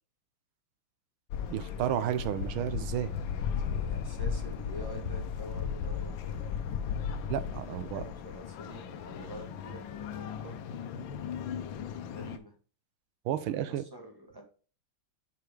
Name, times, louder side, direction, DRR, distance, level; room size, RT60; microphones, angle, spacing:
sound 1, 1.3-12.4, left 7 dB, 70° left, 1.4 m, -36 dB
voice 1, 1.5-3.1 7.3-8.0 13.2-13.8, right 11 dB, 75° right, 1.5 m, -32 dB
voice 2, 3.5-6.6 7.6-10.6 12.1-12.5 13.7-14.4, equal, 10° right, 1.5 m, -47 dB
5.9 x 4.8 x 4.8 m
omnidirectional pair, 2.4 m